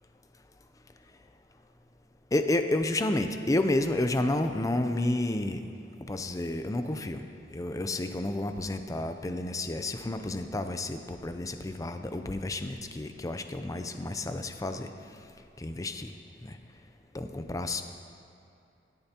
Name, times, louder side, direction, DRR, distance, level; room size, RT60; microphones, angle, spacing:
voice 1, 2.3-5.6 6.1-7.2 7.5-14.9 15.6-16.1 16.4-16.6 17.1-17.8, left 1 dB, 20° left, 7 dB, 0.5 m, -30 dB
17.0 x 10.5 x 2.9 m, 2.6 s
head